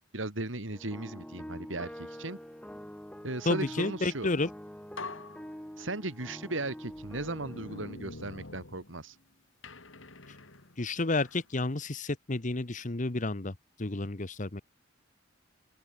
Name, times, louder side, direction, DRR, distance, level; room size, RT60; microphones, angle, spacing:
voice 1, 0.1-2.4 3.2-4.3 5.8-9.2, right 2 dB, 80° right, 3.1 m, -37 dB
sound 1, 0.7-7.9, equal, 5° left, 3.5 m, -46 dB
voice 2, 3.4-4.5 10.8-13.5 13.8-14.6, left 2 dB, 40° left, 1.1 m, -31 dB
sound 2, 4.4-4.5 5.0-6.3 6.9-9.2 9.6-11.5, left 3 dB, 85° left, 3.3 m, -46 dB
head